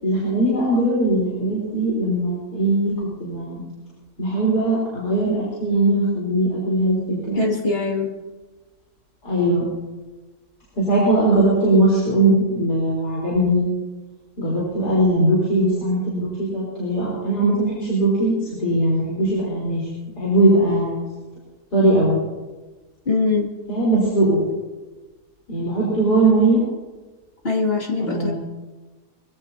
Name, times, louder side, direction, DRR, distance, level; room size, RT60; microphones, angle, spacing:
voice 1, 0.0-2.9 3.2-3.6 4.2-7.4 9.2-9.7 10.8-13.6 14.4-19.8 20.2-21.1 21.7-22.2 23.7-24.4 25.5-26.6 28.0-28.3, right 1 dB, 85° left, -6 dB, 4.9 m, -20 dB
voice 2, 7.4-8.1 23.1-23.5 27.4-28.3, left 3 dB, 35° left, -1 dB, 2.7 m, -22 dB
24.5 x 16.0 x 2.9 m, 1.2 s
omnidirectional pair, 1.7 m